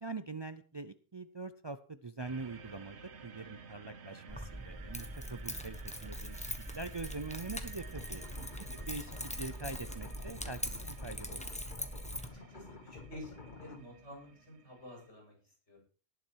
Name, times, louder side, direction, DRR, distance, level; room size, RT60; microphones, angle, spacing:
voice 1, 0.0-8.2 8.9-11.5, right 3 dB, 30° right, 11 dB, 0.5 m, -44 dB
sound 1, 2.2-15.1, right 5 dB, 75° right, 1.4 m, -54 dB
Keys jangling, 4.3-12.3, equal, 5° left, 1.2 m, -42 dB
sound 2, 7.9-13.9, left 4 dB, 45° left, 1.2 m, -52 dB
voice 2, 8.3-8.8 12.3-15.3 15.7-15.8, equal, 80° left, -1 dB, 7.7 m, -50 dB
19.0 x 7.3 x 4.7 m, 0.38 s
omnidirectional pair, 1.1 m